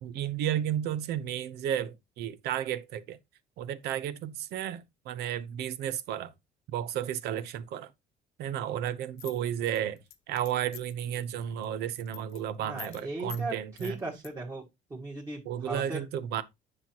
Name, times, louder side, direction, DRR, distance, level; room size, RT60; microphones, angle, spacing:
voice 1, 0.0-3.2 3.6-6.3 6.7-7.9 8.4-10.0 10.3-14.0 15.5-16.4, right 10 dB, 80° right, 0.9 m, -33 dB
sound 1, 9.2-11.0 11.4-11.7 11.9-12.4 12.8-13.0 13.3-13.4 13.8-14.3, left 12 dB, 80° left, 1.0 m, -46 dB
voice 2, 12.6-13.5 13.8-14.6 14.9-16.1, right 2 dB, 20° right, 2.0 m, -37 dB
10.0 x 5.9 x 2.9 m
cardioid pair, 145°, 17 cm